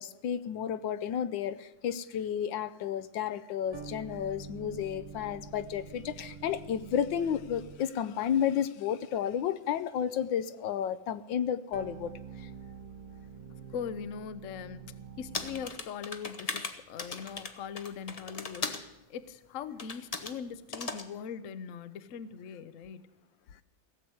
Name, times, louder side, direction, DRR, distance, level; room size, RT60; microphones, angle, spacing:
voice 1, 0.0-12.1 12.4-12.5, left 9 dB, 75° left, 13 dB, 1.4 m, -32 dB
sound 1, 3.7-8.2 11.7-15.9, right 5 dB, 40° right, 0.6 m, -46 dB
voice 2, 13.7-14.8 15.2-23.0, left 7 dB, 55° left, 13 dB, 0.9 m, -41 dB
sound 2, 15.3-18.9 19.8-20.4 20.7-21.1, left 4 dB, 35° left, 0.5 m, -38 dB
16.5 x 7.8 x 9.5 m, 0.98 s
omnidirectional pair, 2.1 m